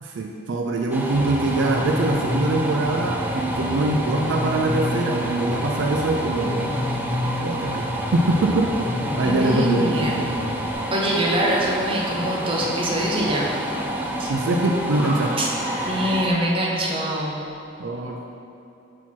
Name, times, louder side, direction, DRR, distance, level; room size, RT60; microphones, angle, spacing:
voice 1, 0.0-6.7 7.4-7.8 8.1-8.7 9.2-10.3 14.3-15.3 17.8-18.2, right 2 dB, 70° right, 1 dB, 0.4 m, -23 dB
sound 1, 0.9-16.3, right 1 dB, 10° right, 0.4 m, -29 dB
Bass guitar, 1.1-10.7, left 2 dB, 85° left, 0.8 m, -30 dB
voice 2, 9.2-10.2 10.9-13.5 14.2-14.3 15.4-15.5 15.9-17.4, right 1 dB, 30° right, -3 dB, 0.8 m, -24 dB
Car, 9.9-17.6, equal, 15° left, 1.5 m, -39 dB
5.9 x 4.4 x 4.4 m, 2.6 s
head